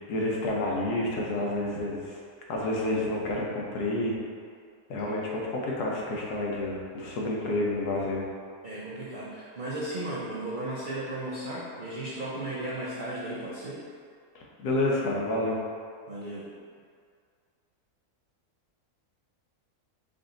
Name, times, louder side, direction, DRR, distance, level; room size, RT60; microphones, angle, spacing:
voice 1, 0.1-2.2 2.5-4.2 4.9-8.3 14.3-15.6, left 1 dB, 90° left, -3 dB, 1.3 m, -29 dB
voice 2, 8.6-13.8 16.1-16.5, right 1 dB, 60° right, -7 dB, 0.5 m, -35 dB
5.0 x 2.6 x 3.8 m, 2.1 s
omnidirectional pair, 1.6 m